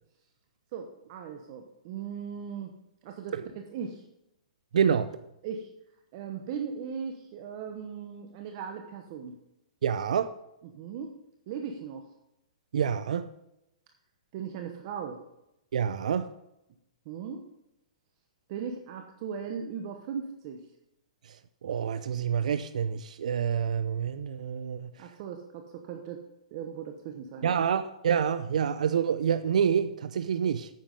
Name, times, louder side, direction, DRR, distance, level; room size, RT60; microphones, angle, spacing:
voice 1, 0.7-2.7 3.0-4.0 5.4-5.7 6.1-9.3 10.6-11.2 11.5-12.1 14.3-15.2 17.1-17.4 18.5-20.6 25.0-26.2 26.5-27.5, right 7 dB, 40° right, 1.0 m, -38 dB
voice 2, 4.7-5.1 9.8-10.3 12.7-13.3 15.7-16.3 21.6-24.9 27.4-30.7, right 7 dB, 75° right, 0.5 m, -27 dB
9.2 x 7.1 x 5.3 m
hypercardioid pair, 155°, 4 cm